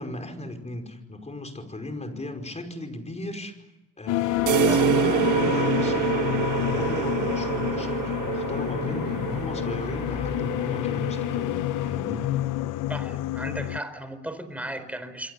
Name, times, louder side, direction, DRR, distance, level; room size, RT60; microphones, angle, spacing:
voice 1, 0.0-3.6 4.0-11.6 11.8-12.3, left 1 dB, 20° left, 6 dB, 5.1 m, -36 dB
sound 1, 4.1-13.8, left 15 dB, 90° left, 0.9 m, -28 dB
sound 2, 4.3-10.4, left 3 dB, 55° left, 7.6 m, -42 dB
sound 3, 4.5-12.0, right 11 dB, 80° right, 1.5 m, -27 dB
voice 2, 12.9-15.3, right 1 dB, 5° right, 10 dB, 4.4 m, -35 dB
29.0 x 22.5 x 8.2 m, 1.0 s
cardioid pair, 90°, 30 cm